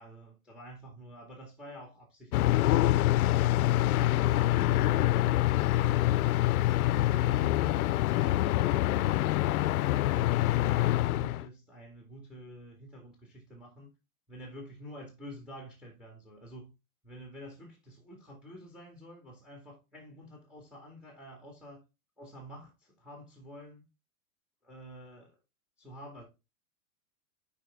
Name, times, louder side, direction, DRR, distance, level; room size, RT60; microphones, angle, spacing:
voice 1, 0.0-3.2 3.8-6.4 7.1-9.4 10.1-13.9 14.3-16.7 17.0-21.8 22.2-23.8 24.6-25.3 25.8-26.2, equal, ahead, 2.0 m, -48 dB
sound 1, 2.3-11.4, left 15 dB, 85° left, 0.5 m, -25 dB
6.6 x 4.8 x 3.5 m
supercardioid pair, 140°, 43 cm